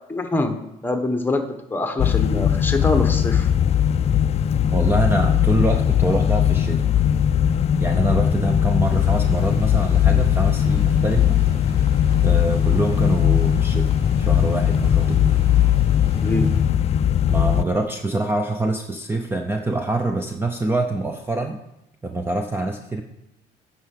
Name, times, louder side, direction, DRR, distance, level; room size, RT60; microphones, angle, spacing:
voice 1, 0.1-0.6 0.8-3.5 16.2-16.5, left 2 dB, 10° left, 5 dB, 1.2 m, -24 dB
sound 1, 2.0-17.6, left 9 dB, 40° left, 0.4 m, -19 dB
voice 2, 4.7-6.8 7.8-11.4 11.8-11.9 12.2-13.9 14.2-15.5 17.3-21.6 22.0-23.0, right 2 dB, 15° right, 6 dB, 0.6 m, -25 dB
sound 2, 8.8-16.6, right 1 dB, 65° right, 4.5 m, -45 dB
9.2 x 5.7 x 6.7 m, 0.87 s
cardioid pair, 110°, 17 cm